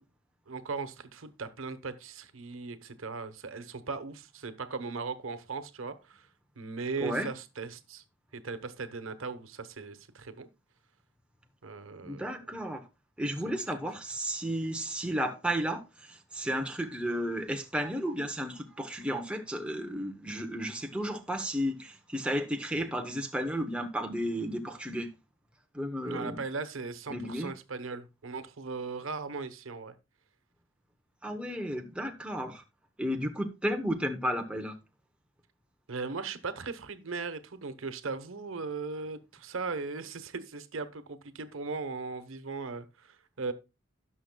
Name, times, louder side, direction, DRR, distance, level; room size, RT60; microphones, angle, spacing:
voice 1, 0.5-6.3 6.6-8.0 8.3-10.5 11.6-12.3 13.4-13.6 26.0-29.9 35.9-43.5, right 4 dB, 80° right, 1.0 m, -38 dB
voice 2, 12.0-12.9 13.2-25.1 25.7-26.4 27.1-27.5 31.2-32.6 33.0-34.8, equal, 5° right, 0.8 m, -33 dB
17.0 x 6.3 x 2.2 m
head